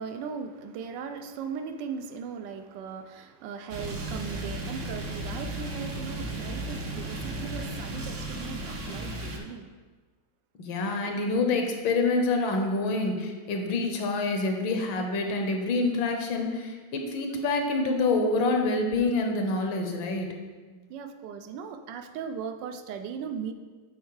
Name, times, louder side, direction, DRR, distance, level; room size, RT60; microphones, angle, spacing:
voice 1, 0.0-9.7 20.9-23.5, right 6 dB, 75° right, 7 dB, 1.1 m, -38 dB
sound 1, 3.7-9.4, right 1 dB, 50° right, 0.9 m, -35 dB
voice 2, 10.6-20.3 20.7-20.8, left 3 dB, 75° left, 4 dB, 1.6 m, -27 dB
8.2 x 4.3 x 4.7 m, 1.4 s
omnidirectional pair, 2.3 m